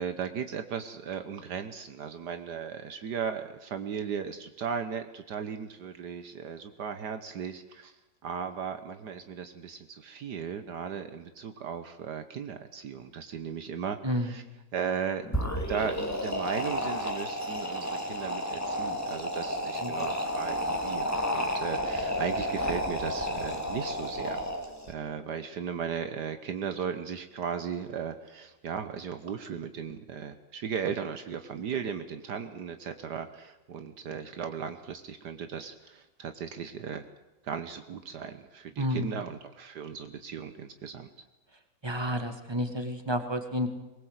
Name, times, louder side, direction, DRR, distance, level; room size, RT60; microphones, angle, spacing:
voice 1, 0.0-7.9 8.2-14.4 14.7-24.5 24.9-37.0 37.4-41.1, right 7 dB, 70° right, 9 dB, 1.7 m, -36 dB
voice 2, 14.0-14.4 19.8-20.0 38.8-39.2 41.8-43.7, equal, 15° right, 7 dB, 2.1 m, -30 dB
sound 1, 15.2-24.9, equal, 10° left, 2.3 m, -32 dB
22.5 x 20.5 x 8.1 m, 0.99 s
omnidirectional pair, 1.9 m